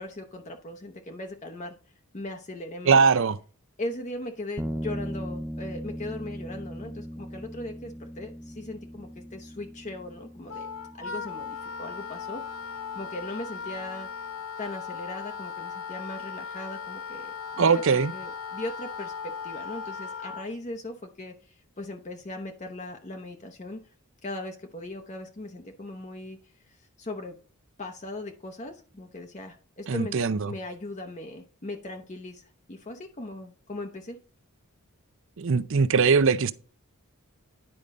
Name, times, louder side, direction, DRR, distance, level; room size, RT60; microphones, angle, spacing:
voice 1, 0.0-1.8 2.1-3.0 3.8-10.7 10.9-12.4 12.9-14.1 14.6-23.8 24.2-26.4 26.6-27.4 27.8-34.2, left 1 dB, 30° left, 0.8 m, -39 dB
voice 2, 2.9-3.4 17.6-18.1 29.9-30.5 35.4-36.5, right 5 dB, 60° right, 0.5 m, -21 dB
sound 1, 4.6-14.1, equal, 10° right, 0.5 m, -39 dB
Wind instrument woodwind instrument, 10.5-20.5, left 6 dB, 70° left, 1.1 m, -38 dB
10.0 x 5.3 x 3.7 m
head